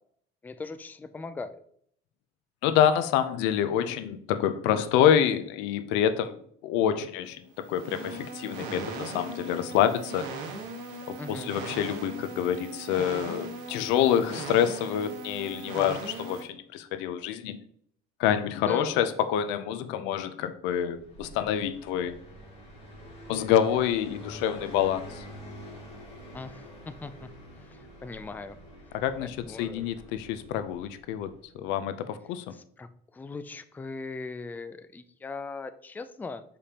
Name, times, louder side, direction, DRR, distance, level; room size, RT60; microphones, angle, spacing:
voice 1, 0.4-1.6 11.2-11.5 18.6-19.0 26.3-27.3 27.6-28.6 28.9-29.9 32.5-36.4, left 3 dB, 10° left, 11 dB, 0.3 m, -40 dB
voice 2, 2.6-6.4 6.6-10.3 11.1-17.6 18.2-22.2 23.3-25.2 28.9-32.4, left 9 dB, 90° left, 12 dB, 0.6 m, -27 dB
sound 1, 7.5-16.4, right 3 dB, 85° right, 1.4 m, -39 dB
Car passing by, 20.9-31.5, equal, 35° left, 2.6 m, -47 dB
6.7 x 5.1 x 2.8 m, 0.65 s
cardioid pair, 120°, 18 cm